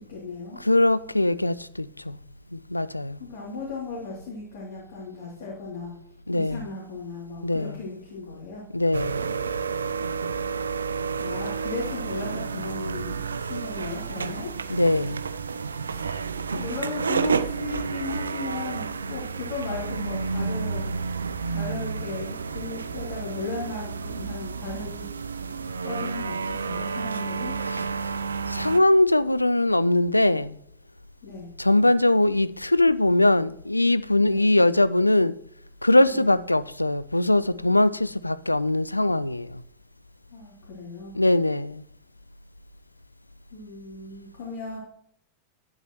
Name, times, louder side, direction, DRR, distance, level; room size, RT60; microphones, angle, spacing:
voice 1, 0.0-0.6 3.2-5.9 6.3-8.6 11.2-14.5 15.8-16.1 16.5-20.9 21.5-25.1 25.8-27.6 31.2-31.5 34.2-34.5 36.1-36.4 40.3-41.1 43.5-44.8, left 4 dB, 55° left, 2.8 m, -36 dB
voice 2, 0.6-2.2 2.5-3.2 6.3-6.7 7.4-7.8 8.7-9.3 14.7-15.2 27.7-28.1 28.5-30.6 31.6-35.3 35.8-39.6 41.1-41.8, left 1 dB, 85° left, 0.3 m, -21 dB
sound 1, 8.9-28.8, right 5 dB, 75° right, 0.4 m, -30 dB
11.0 x 9.1 x 3.0 m
figure-of-eight pair, 90°, 0 cm